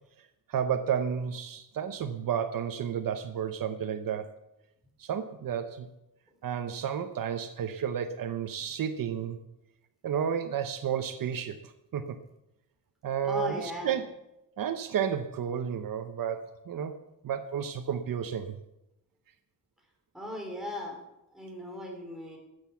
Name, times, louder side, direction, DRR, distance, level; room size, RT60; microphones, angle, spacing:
voice 1, 0.5-4.3 5.0-5.9 6.4-9.4 10.0-12.2 13.0-14.0 14.6-16.9 17.2-18.6, right 8 dB, 70° right, 9 dB, 0.9 m, -32 dB
voice 2, 13.3-13.9 20.1-21.0 21.3-22.4, left 1 dB, ahead, -1 dB, 3.8 m, -37 dB
13.5 x 8.0 x 7.1 m, 0.89 s
wide cardioid pair, 160°, 35 cm